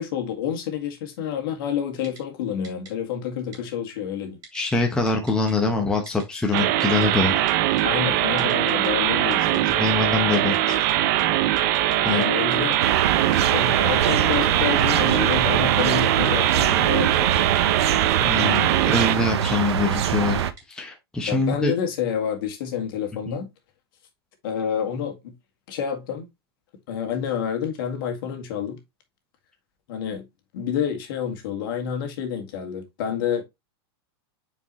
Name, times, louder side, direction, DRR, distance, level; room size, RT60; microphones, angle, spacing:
voice 1, 0.0-4.4 7.8-9.9 12.1-12.8 13.5-17.5 21.3-23.5 24.4-25.3 25.7-26.3 26.9-28.8 29.9-30.3 30.5-33.4, left 8 dB, 55° left, 2.0 m, -28 dB
Typing, 2.0-2.2 2.6-2.9 3.5-3.6 4.4-4.8 5.1-5.5 6.1-6.2 6.6-7.1 7.5-7.8 8.4-8.9 9.3-9.9 10.3-10.6 10.9-11.0 11.2-11.3 11.6-12.0 12.2-12.3 12.5-12.8 13.3-13.4 14.0-14.4 14.8-15.4 15.7-16.7 17.1-17.9 18.1-18.2 18.5-18.6 19.0-19.1 19.4-20.0 20.4-20.6, right 5 dB, 25° right, 3.3 m, -45 dB
voice 2, 4.5-7.3 9.8-10.8 12.0-12.3 18.2-20.4 20.7-21.7 23.3-23.4, left 3 dB, 5° left, 1.0 m, -24 dB
sound 1, 6.5-19.2, right 13 dB, 45° right, 0.7 m, -22 dB
sound 2, 12.8-20.5, right 9 dB, 85° right, 0.9 m, -24 dB
7.1 x 4.8 x 3.0 m
supercardioid pair, 155°, 14 cm